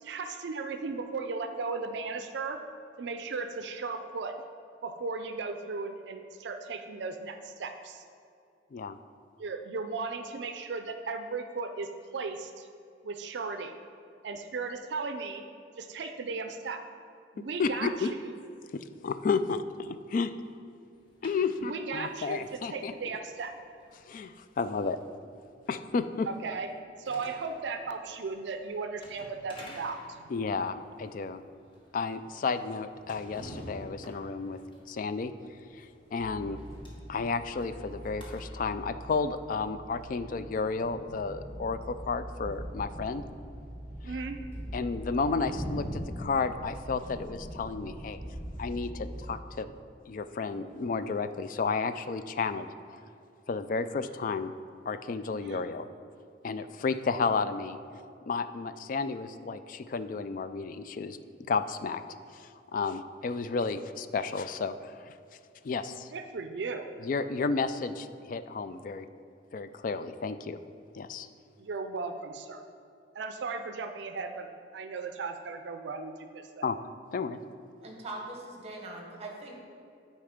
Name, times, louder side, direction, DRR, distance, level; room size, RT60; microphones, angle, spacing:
voice 1, 0.0-2.6 3.0-4.3 4.8-8.0 9.4-12.7 13.0-13.8 14.2-15.4 15.8-16.8 17.3-18.4 21.6-23.5 26.3-26.7 27.0-30.2 44.0-44.4 55.4-55.7 66.1-66.9 71.6-72.6 73.1-74.5 74.7-76.7, right 4 dB, 70° right, 7 dB, 0.4 m, -36 dB
voice 2, 17.6-18.1 18.7-20.3 21.2-22.9 24.1-25.0 25.7-26.3 30.3-31.4 31.9-34.6 34.9-35.3 35.8-36.6 37.1-43.2 44.7-48.2 48.6-49.7 50.1-52.7 53.5-54.5 54.9-55.9 56.4-57.8 58.3-61.2 61.5-62.0 62.3-65.1 65.6-66.1 67.0-69.1 69.5-70.6 70.9-71.3 76.6-76.8 77.1-77.4, left 4 dB, 45° left, 11 dB, 0.3 m, -32 dB
sound 1, 20.9-38.4, equal, 25° left, 1.2 m, -52 dB
sound 2, 36.2-49.4, equal, 15° right, 1.3 m, -42 dB
voice 3, 77.8-79.6, right 2 dB, 35° right, 0 dB, 1.1 m, -41 dB
9.0 x 4.3 x 5.1 m, 2.5 s
head